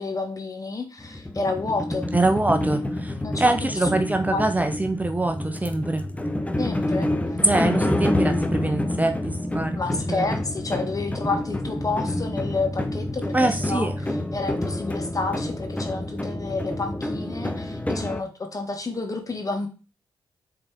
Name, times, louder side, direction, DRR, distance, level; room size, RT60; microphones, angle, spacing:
voice 1, 0.0-2.1 3.2-3.9 4.3-4.7 6.6-7.1 9.7-13.3 13.7-13.9 14.3-19.7, left 3 dB, 35° left, 5 dB, 1.6 m, -30 dB
sound 1, 1.0-18.2, left 1 dB, 15° left, 0.8 m, -28 dB
voice 2, 2.1-6.1 7.4-9.8 10.1-10.4 13.3-13.9, right 2 dB, 15° right, 7 dB, 0.8 m, -24 dB
6.9 x 4.0 x 3.5 m, 0.35 s
supercardioid pair, 45°, 10 cm